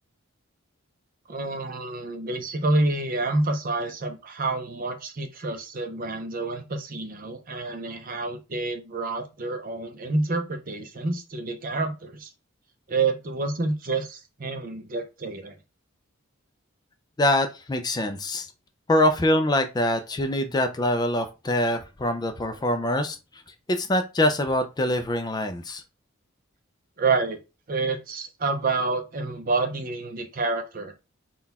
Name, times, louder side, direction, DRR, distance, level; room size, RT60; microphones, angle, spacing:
voice 1, 1.3-12.3 12.9-15.5 27.0-27.4 27.7-30.9, right 3 dB, 40° right, 0.7 m, -28 dB
voice 2, 17.2-18.5 18.9-25.8, left 1 dB, 20° left, 0.4 m, -24 dB
4.0 x 2.3 x 4.0 m
head